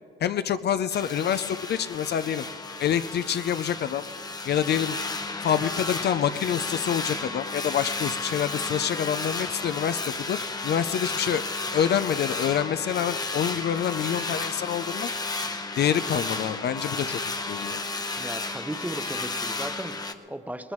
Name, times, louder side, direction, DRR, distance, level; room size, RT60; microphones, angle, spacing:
voice 1, 0.2-2.5 2.8-4.1 4.5-5.0 5.4-10.4 10.6-11.4 11.7-15.1 15.8-17.2 17.5-17.8, left 9 dB, 55° left, 12 dB, 0.5 m, -26 dB
sound 1, 0.9-20.1, left 3 dB, 20° left, 0.9 m, -33 dB
voice 2, 18.2-20.7, right 1 dB, 10° right, 10 dB, 0.6 m, -36 dB
20.0 x 20.0 x 3.1 m, 2.4 s
cardioid pair, 90°, 20 cm